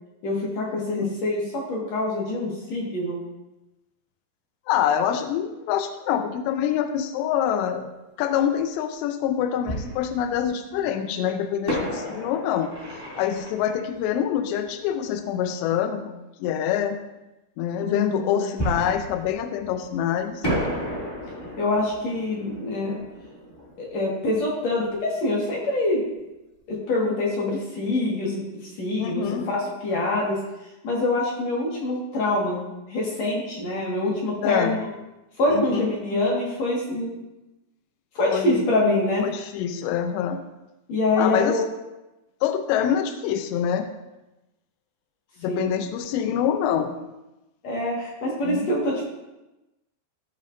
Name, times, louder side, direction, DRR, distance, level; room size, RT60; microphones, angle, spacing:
voice 1, 0.2-3.2 17.8-18.6 21.6-23.0 23.8-26.0 26.7-28.4 28.8-30.4 30.8-34.8 35.4-37.1 38.2-39.3 40.9-41.6 45.5-45.7 47.6-49.0, left 2 dB, 55° left, -4 dB, 2.1 m, -25 dB
voice 2, 4.7-7.9 8.2-12.7 13.2-17.0 17.6-20.5 29.0-29.5 34.4-34.8 35.5-35.9 38.3-38.7 39.2-40.4 41.2-41.6 42.4-43.9 45.4-47.0 48.4-48.7, left 9 dB, 85° left, 7 dB, 2.7 m, -25 dB
Fireworks, 8.4-8.5 9.6-10.8 11.6-15.1 18.6-20.0 20.4-25.0 25.2-25.3 25.8-26.1, equal, 20° left, 0.5 m, -33 dB
15.5 x 5.4 x 2.6 m, 0.99 s
omnidirectional pair, 5.1 m